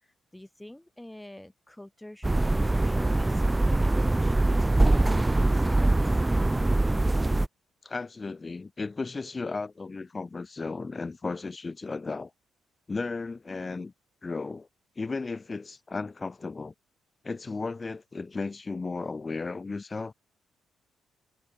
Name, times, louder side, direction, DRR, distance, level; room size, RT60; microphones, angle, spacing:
voice 1, 0.0-6.2, left 1 dB, 5° left, 3.5 m, -47 dB
sound 1, 2.2-7.5, right 2 dB, 15° right, 0.9 m, -23 dB
voice 2, 7.8-12.3 12.9-13.9 14.2-14.7 15.0-16.7 17.2-20.1, left 3 dB, 25° left, 2.7 m, -35 dB
cardioid pair, 90°, 0 cm